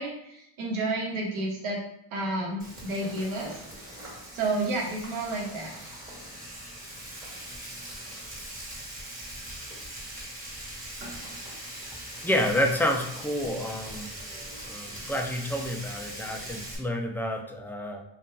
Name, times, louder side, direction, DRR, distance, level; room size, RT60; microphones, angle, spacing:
voice 1, 0.0-1.8 2.1-3.6 4.0-5.9, right 2 dB, 80° right, -1 dB, 1.1 m, -31 dB
Frying (food), 2.6-16.8, right 1 dB, 15° right, 1.5 m, -41 dB
voice 2, 12.2-14.1 14.7-18.0, left 1 dB, 5° left, 3 dB, 0.3 m, -29 dB
2.8 x 2.4 x 3.5 m, 0.76 s
cardioid pair, 80°, 48 cm